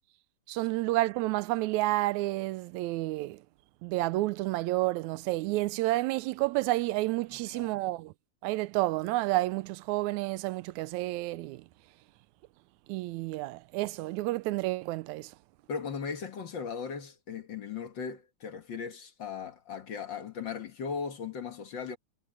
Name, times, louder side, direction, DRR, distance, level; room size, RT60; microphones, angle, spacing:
voice 1, 0.5-3.4 3.8-8.1 8.4-11.7 12.9-15.3, right 18 dB, 80° right, 1.8 m, -30 dB
voice 2, 7.3-7.7 15.7-22.0, left 6 dB, 45° left, 1.7 m, -38 dB
omnidirectional pair, 3.6 m